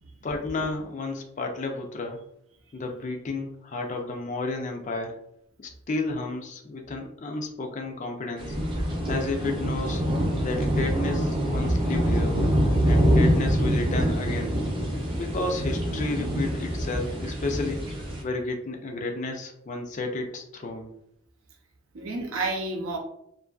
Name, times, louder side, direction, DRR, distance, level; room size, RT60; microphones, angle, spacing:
voice 1, 0.2-2.2 2.7-5.2 5.6-8.6 9.1-10.0 10.4-12.4 12.8-14.6 15.1-17.8 18.2-20.9, left 2 dB, 35° left, 2 dB, 0.4 m, -32 dB
sound 1, 8.4-18.2, equal, 25° right, 0.5 m, -25 dB
voice 2, 21.9-23.0, right 2 dB, 75° right, 2 dB, 0.6 m, -31 dB
2.6 x 2.5 x 2.3 m, 0.74 s
head